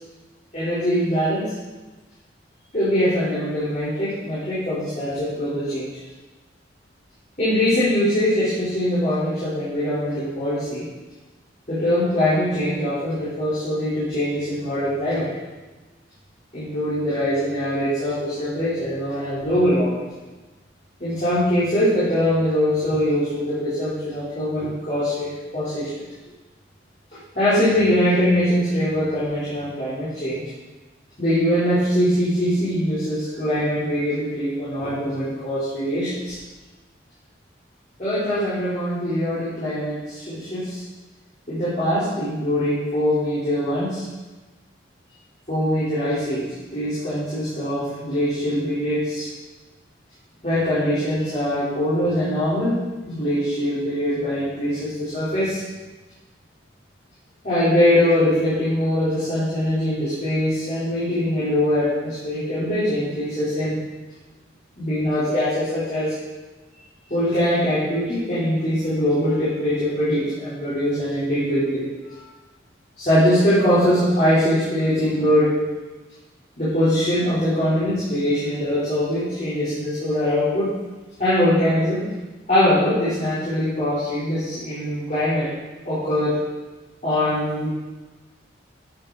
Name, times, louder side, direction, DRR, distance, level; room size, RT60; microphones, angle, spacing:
voice 1, 0.5-1.5 2.7-5.9 7.4-10.8 11.7-15.3 16.5-20.0 21.0-25.9 27.4-30.4 31.2-36.4 38.0-40.8 41.5-44.0 45.5-46.5 46.7-49.3 50.4-52.8 53.1-55.6 57.4-63.8 64.8-66.1 67.1-71.9 73.0-75.5 76.6-80.7 81.2-82.0 82.5-85.5 85.8-86.4 87.0-87.7, equal, 40° left, -12 dB, 3.8 m, -22 dB
12.5 x 8.8 x 4.0 m, 1.2 s
head